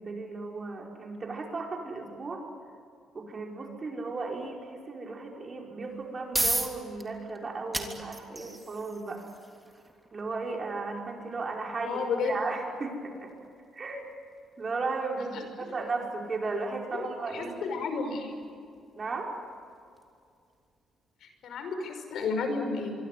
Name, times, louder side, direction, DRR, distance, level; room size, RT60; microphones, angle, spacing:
voice 1, 0.0-2.4 3.1-9.2 10.1-13.3 13.7-14.1 14.6-17.6 19.0-19.3, right 3 dB, 35° right, 0 dB, 5.5 m, -35 dB
sound 1, 5.8-20.7, right 1 dB, 15° right, 3.3 m, -39 dB
voice 2, 11.8-12.4 16.9-17.1 17.3-18.3 21.2-23.0, left 4 dB, 70° left, 6 dB, 5.5 m, -32 dB
25.0 x 24.5 x 9.6 m, 2.3 s
cardioid pair, 90°, 0 cm